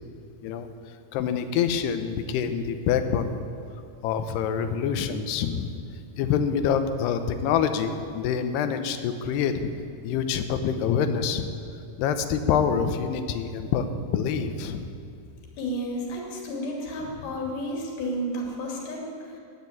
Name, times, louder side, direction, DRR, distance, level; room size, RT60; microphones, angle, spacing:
voice 1, 1.1-3.4 4.0-5.7 6.2-9.7 10.0-11.5 12.0-13.9 14.1-14.9, left 7 dB, 90° left, 8 dB, 2.9 m, -26 dB
voice 2, 15.6-19.4, equal, 70° left, -1 dB, 4.3 m, -32 dB
13.5 x 9.8 x 8.5 m, 2.4 s
omnidirectional pair, 4.6 m